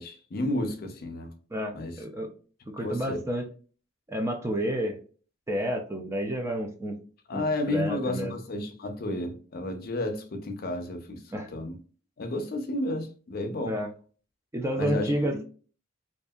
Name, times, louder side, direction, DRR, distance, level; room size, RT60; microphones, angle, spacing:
voice 1, 0.0-1.3 1.7-2.0 2.8-3.2 7.3-11.2 11.5-11.8 12.2-13.8 14.8-15.4, left 1 dB, 50° left, 0.5 m, -31 dB
voice 2, 1.5-2.3 2.7-3.4 4.1-5.0 5.5-7.0 7.3-8.3 11.3-11.5 13.6-13.9 14.5-15.4, equal, 15° right, 0.3 m, -30 dB
2.7 x 2.4 x 2.3 m
head